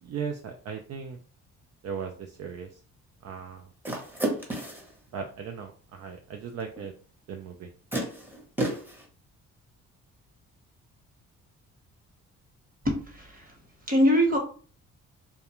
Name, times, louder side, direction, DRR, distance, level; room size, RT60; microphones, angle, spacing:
voice 1, 0.0-1.2 1.8-2.8 3.2-3.7 5.1-6.9 7.3-7.7, right 6 dB, 55° right, 4 dB, 0.4 m, -37 dB
sound 1, 3.8-4.9 6.8-6.9 7.9-9.0, right 1 dB, 5° right, 0.8 m, -31 dB
voice 2, 12.8-13.5 13.9-14.4, equal, 30° right, 1 dB, 1.0 m, -23 dB
2.3 x 2.2 x 2.9 m, 0.41 s
cardioid pair, 90°, 30 cm